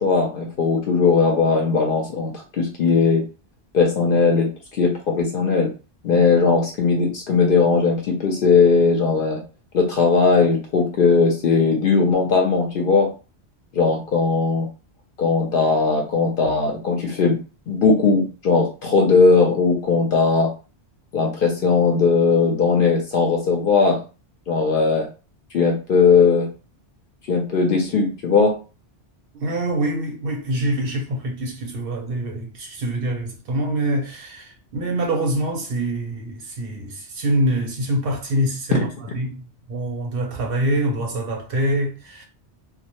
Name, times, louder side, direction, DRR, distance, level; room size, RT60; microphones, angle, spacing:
voice 1, 0.0-3.2 3.7-4.5 4.8-5.7 6.0-9.4 9.7-13.1 13.7-14.7 15.2-17.4 17.7-20.5 21.1-24.0 24.5-25.1 25.5-26.5 27.3-28.5 38.7-38.8, left 4 dB, 60° left, 0.6 m, -18 dB
voice 2, 29.3-38.9 39.1-42.2, right 1 dB, 60° right, 0.7 m, -25 dB
2.2 x 2.0 x 2.8 m
omnidirectional pair, 1.2 m